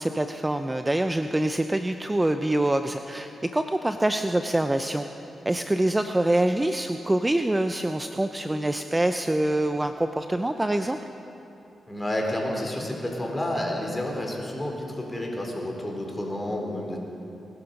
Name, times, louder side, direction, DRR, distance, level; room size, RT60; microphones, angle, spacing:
voice 1, 0.0-5.1 5.5-11.0, right 1 dB, 15° right, 8 dB, 0.6 m, -25 dB
voice 2, 11.9-17.0, left 1 dB, 15° left, 0 dB, 3.9 m, -30 dB
21.0 x 12.0 x 5.4 m, 2.9 s
cardioid pair, 60°, 0 cm